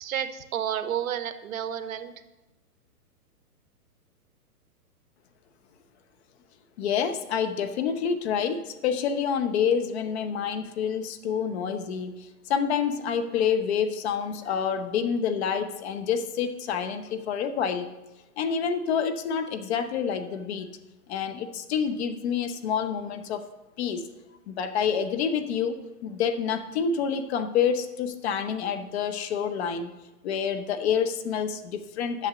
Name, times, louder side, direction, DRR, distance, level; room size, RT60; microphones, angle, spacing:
voice 1, 0.0-2.1, right 9 dB, 60° right, 11 dB, 1.0 m, -31 dB
voice 2, 6.8-17.9 18.4-20.7 21.1-23.5 23.8-24.0 24.5-29.9 30.2-32.3, left 7 dB, 45° left, 9 dB, 0.9 m, -28 dB
8.2 x 6.4 x 6.9 m, 1.0 s
hypercardioid pair, 135°, 47 cm